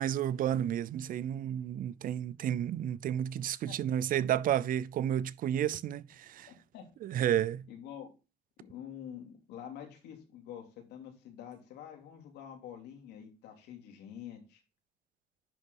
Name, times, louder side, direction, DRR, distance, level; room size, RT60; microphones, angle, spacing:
voice 1, 0.0-6.5 7.0-7.7, right 10 dB, 55° right, 0.5 m, -31 dB
voice 2, 6.5-6.9 7.7-8.1 8.6-14.6, left 9 dB, 85° left, 2.8 m, -47 dB
10.5 x 4.0 x 5.3 m
cardioid pair, 110°, 17 cm